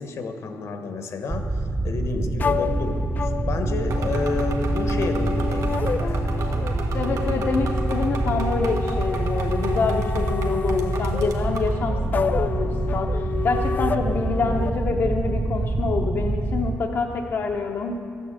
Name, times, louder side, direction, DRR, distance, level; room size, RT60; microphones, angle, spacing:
voice 1, 0.0-6.3, left 4 dB, 70° left, 6 dB, 1.3 m, -31 dB
sound 1, 1.3-16.8, right 2 dB, 15° right, 0.5 m, -26 dB
sound 2, 2.4-14.7, left 6 dB, 35° left, 0.4 m, -30 dB
sound 3, 3.9-11.8, right 5 dB, 90° right, 1.4 m, -36 dB
voice 2, 6.9-18.0, left 4 dB, 55° left, 2 dB, 0.8 m, -26 dB
14.0 x 9.7 x 8.1 m, 2.9 s
wide cardioid pair, 175°, 5 cm